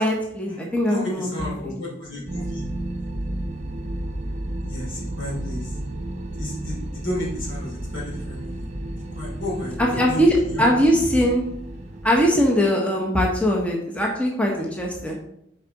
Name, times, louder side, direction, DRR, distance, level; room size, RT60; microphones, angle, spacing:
voice 1, 0.0-1.7 9.8-11.4 12.0-15.2, equal, 5° left, -1 dB, 0.9 m, -21 dB
voice 2, 0.9-2.6 4.7-5.7 6.3-8.5 9.1-10.2 10.5-10.7, left 1 dB, 75° left, -4 dB, 2.8 m, -32 dB
sound 1, 2.2-12.3, right 1 dB, 35° right, 0.6 m, -32 dB
7.2 x 4.7 x 4.0 m, 0.75 s
head